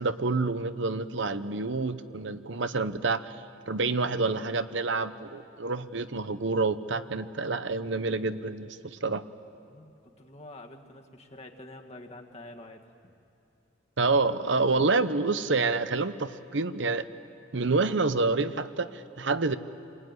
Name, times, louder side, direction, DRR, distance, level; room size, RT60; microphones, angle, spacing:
voice 1, 0.0-3.4 3.7-9.2 14.0-17.0 17.5-19.6, right 3 dB, 65° right, 12 dB, 0.9 m, -28 dB
voice 2, 9.7-13.1, left 1 dB, 35° left, 2 dB, 1.8 m, -47 dB
27.5 x 21.5 x 9.7 m, 2.6 s
head